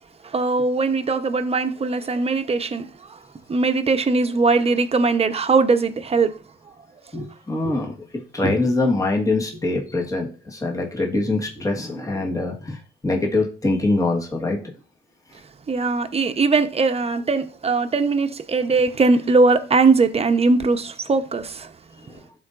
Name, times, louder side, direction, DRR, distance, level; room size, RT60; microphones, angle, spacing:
voice 1, 0.2-3.2 3.5-6.4 15.7-21.7, right 3 dB, 30° right, 0.9 m, -20 dB
voice 2, 7.1-14.6 22.1-22.2, left 2 dB, 15° left, 1.5 m, -24 dB
11.5 x 3.9 x 2.5 m
cardioid pair, 90°, 20 cm